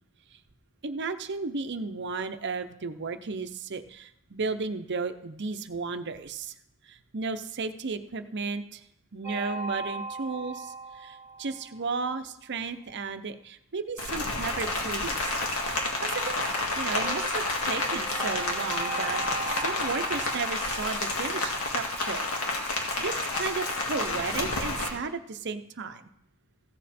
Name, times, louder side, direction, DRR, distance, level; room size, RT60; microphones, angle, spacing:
voice 1, 0.8-6.5 6.9-8.8 9.1-16.4 16.8-19.2 19.5-22.2 23.0-26.1, right 4 dB, 55° right, 9 dB, 0.7 m, -34 dB
sound 1, 9.2-12.2 16.9-21.9, right 3 dB, 10° right, 1.7 m, -39 dB
Rain, 14.0-24.9, left 2 dB, 75° left, 2.0 m, -30 dB
15.0 x 7.3 x 4.3 m, 0.76 s
head